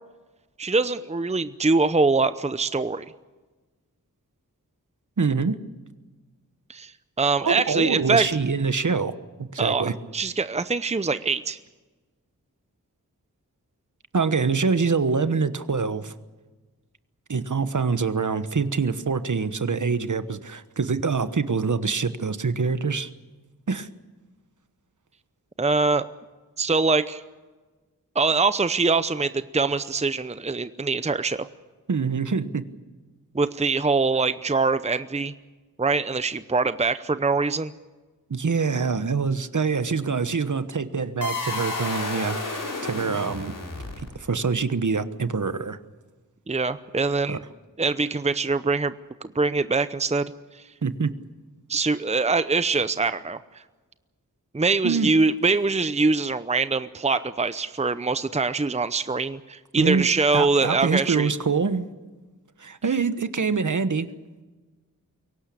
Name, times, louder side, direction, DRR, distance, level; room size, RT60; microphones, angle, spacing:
voice 1, 0.6-3.1 6.7-6.9 7.2-8.3 9.6-11.6 25.6-26.1 26.6-27.2 28.1-31.5 33.3-35.3 35.8-37.7 46.5-47.4 47.8-48.9 49.2-50.3 51.7-53.4 54.5-61.3, right 4 dB, 20° right, 13 dB, 0.7 m, -23 dB
voice 2, 5.2-5.6 7.4-9.1 9.4-9.9 14.1-16.1 17.3-23.1 23.7-23.9 31.9-32.7 38.3-43.5 44.0-45.8 47.3-47.4 50.8-51.1 54.8-55.1 59.8-61.9 62.6-64.1, right 5 dB, 60° right, 11 dB, 1.3 m, -25 dB
sound 1, 41.2-44.4, left 3 dB, 60° left, 4.6 m, -31 dB
23.0 x 18.0 x 8.5 m, 1.3 s
wide cardioid pair, 65°, 35 cm